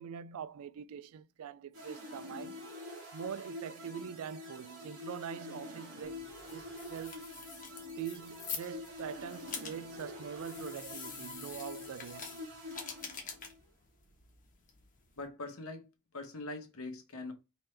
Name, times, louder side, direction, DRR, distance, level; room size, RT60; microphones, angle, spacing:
voice 1, 0.0-2.6 3.1-6.2 6.5-7.3 8.0-12.4, right 8 dB, 80° right, 0.3 m, -43 dB
sound 1, 1.7-13.6, left 2 dB, 60° right, 2.0 m, -47 dB
sound 2, 6.0-15.3, left 6 dB, 40° left, 1.1 m, -47 dB
voice 2, 15.2-15.9 16.1-17.3, left 2 dB, 85° left, 1.0 m, -42 dB
4.3 x 3.3 x 3.3 m
head